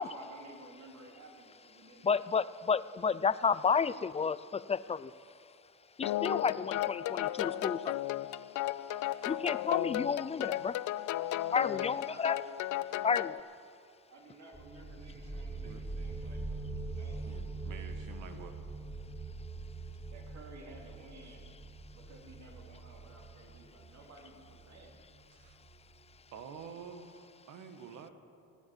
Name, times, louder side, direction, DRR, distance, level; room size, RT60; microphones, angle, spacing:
voice 1, 0.0-2.2 11.7-12.4 14.1-16.7 16.9-17.2 20.1-21.5 21.9-24.9, right 2 dB, 65° right, 0 dB, 3.4 m, -54 dB
voice 2, 2.0-5.1 6.0-8.0 9.2-10.8 11.5-12.4 13.0-13.4, left 6 dB, 20° left, 17 dB, 0.4 m, -31 dB
sound 1, 6.0-13.4, left 14 dB, 75° left, 0.5 m, -34 dB
sound 2, 14.5-25.9, right 3 dB, 15° right, 3.3 m, -43 dB
voice 3, 17.2-18.6 21.2-21.3 25.3-25.6 26.3-28.1, right 6 dB, 85° right, 7 dB, 1.5 m, -48 dB
16.0 x 9.6 x 8.0 m, 2.5 s
cardioid pair, 90°, 30 cm